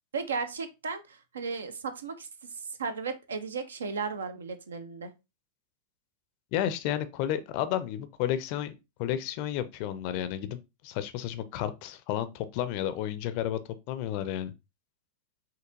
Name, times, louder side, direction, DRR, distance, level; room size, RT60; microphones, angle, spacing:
voice 1, 0.1-2.3 2.8-5.1, right 5 dB, 70° right, 0.6 m, -35 dB
voice 2, 6.5-8.7 9.0-10.6 10.8-13.6 13.9-14.5, left 11 dB, 45° left, 0.5 m, -31 dB
5.9 x 2.8 x 2.5 m
figure-of-eight pair, 90°, 0 cm